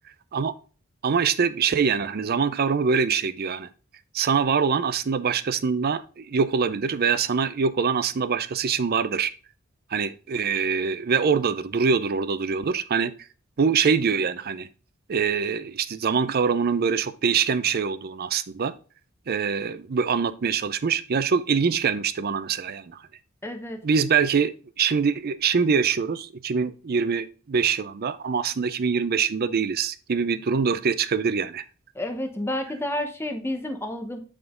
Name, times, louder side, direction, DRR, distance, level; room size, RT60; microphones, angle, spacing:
voice 1, 1.0-3.7 4.1-9.3 9.9-13.1 13.6-14.7 15.1-18.7 19.3-23.0 23.8-31.6, right 6 dB, 50° right, 0.5 m, -24 dB
voice 2, 23.4-23.8 31.9-34.2, left 1 dB, 10° left, 0.8 m, -30 dB
8.2 x 3.7 x 3.7 m
head